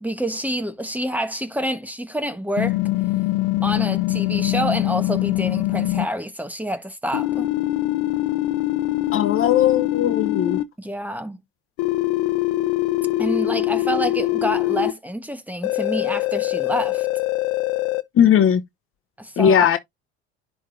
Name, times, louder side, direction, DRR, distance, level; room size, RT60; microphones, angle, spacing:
voice 1, 0.0-2.8 3.6-7.5 10.8-11.4 13.2-17.1 19.2-19.6, right 1 dB, 5° right, 1.3 m, -27 dB
sound 1, 2.6-6.1 7.1-10.6 11.8-14.9 15.6-18.0, left 17 dB, 70° left, 0.8 m, -23 dB
voice 2, 9.1-10.6 18.2-18.6 19.4-19.8, left 9 dB, 45° left, 0.9 m, -17 dB
10.5 x 3.5 x 2.6 m
supercardioid pair, 85°, 31 cm